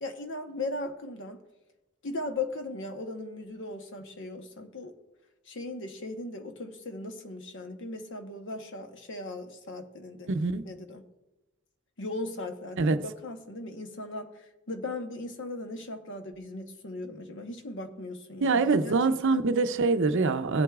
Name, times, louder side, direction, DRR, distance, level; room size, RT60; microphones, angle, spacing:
voice 1, 0.0-1.4 2.0-4.9 5.5-10.3 10.6-11.0 12.0-19.0 19.3-19.4, left 2 dB, 55° left, 1.0 m, -38 dB
voice 2, 10.3-10.7 12.8-13.0 18.4-20.6, right 3 dB, 55° right, 0.6 m, -24 dB
17.5 x 7.9 x 2.4 m
head